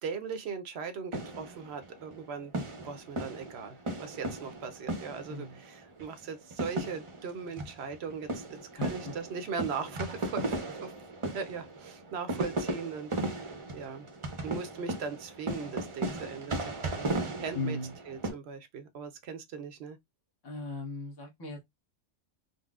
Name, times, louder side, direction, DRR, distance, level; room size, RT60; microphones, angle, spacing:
voice 1, 0.0-2.5 2.8-8.4 8.7-10.9 11.2-14.1 14.4-17.1 17.4-17.8 18.1-20.0, right 6 dB, 65° right, 0.8 m, -39 dB
sound 1, 1.1-2.2 2.5-5.6 6.0-6.1 6.5-18.3, right 2 dB, 35° right, 0.6 m, -36 dB
voice 2, 5.3-5.6 8.8-9.1 17.5-17.9 20.4-21.6, left 2 dB, 25° left, 0.6 m, -37 dB
3.9 x 2.0 x 2.3 m
omnidirectional pair, 1.2 m